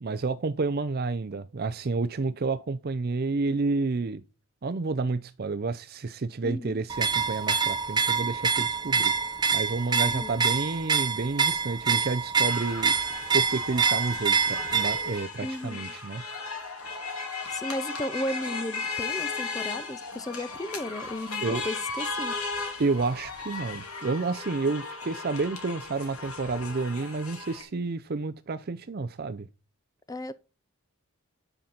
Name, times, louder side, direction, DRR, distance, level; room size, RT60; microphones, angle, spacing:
voice 1, 0.0-4.2 4.6-13.0 13.3-16.2 21.4-21.6 22.8-29.5, right 3 dB, 45° right, 0.5 m, -30 dB
voice 2, 6.4-6.8 9.9-10.3 15.4-15.8 17.5-22.3 30.1-30.3, left 1 dB, 15° left, 0.5 m, -34 dB
sound 1, 6.9-15.2, right 5 dB, 20° right, 0.9 m, -26 dB
sound 2, 12.4-27.6, left 4 dB, 85° left, 3.4 m, -36 dB
10.0 x 5.8 x 5.2 m
head